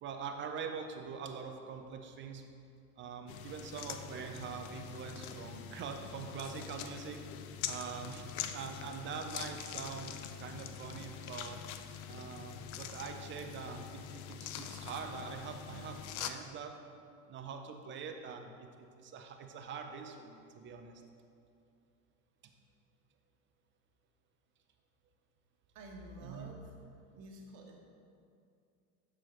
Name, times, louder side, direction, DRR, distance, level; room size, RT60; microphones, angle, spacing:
voice 1, 0.0-2.4 3.0-7.2 7.7-11.6 12.1-16.7 17.3-21.0 26.2-26.5, right 6 dB, 25° right, 4 dB, 0.5 m, -44 dB
sound 1, 3.3-16.3, left 9 dB, 65° left, 0.5 m, -44 dB
voice 2, 25.7-26.7 27.1-27.8, right 1 dB, 60° right, -1 dB, 1.3 m, -50 dB
6.1 x 6.0 x 3.1 m, 2.4 s
hypercardioid pair, 85°, 47 cm